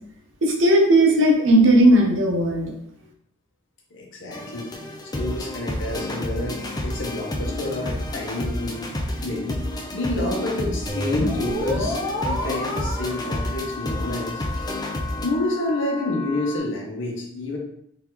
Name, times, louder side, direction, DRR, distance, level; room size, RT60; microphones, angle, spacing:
voice 1, 0.4-2.7, right 1 dB, 65° right, 1 dB, 0.8 m, -16 dB
voice 2, 3.9-4.7 5.1-8.9 9.2-9.6 9.9-12.0 12.3-14.4 15.2-17.6, left 2 dB, 60° left, -1 dB, 1.0 m, -28 dB
sound 1, 4.3-15.3, left 1 dB, 20° left, 0.5 m, -30 dB
sound 2, 10.9-16.6, left 1 dB, 15° right, 1.3 m, -31 dB
3.5 x 3.5 x 3.0 m, 0.74 s
head